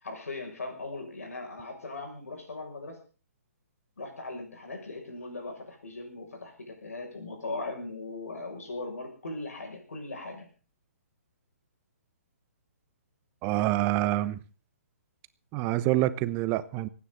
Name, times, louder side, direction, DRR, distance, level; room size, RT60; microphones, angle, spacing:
voice 1, 0.0-3.0 4.0-10.5, left 2 dB, 70° left, 3 dB, 6.5 m, -39 dB
voice 2, 13.4-14.4 15.5-16.9, right 15 dB, 25° right, 15 dB, 1.0 m, -26 dB
25.0 x 9.8 x 4.0 m, 0.37 s
figure-of-eight pair, 130°, 8 cm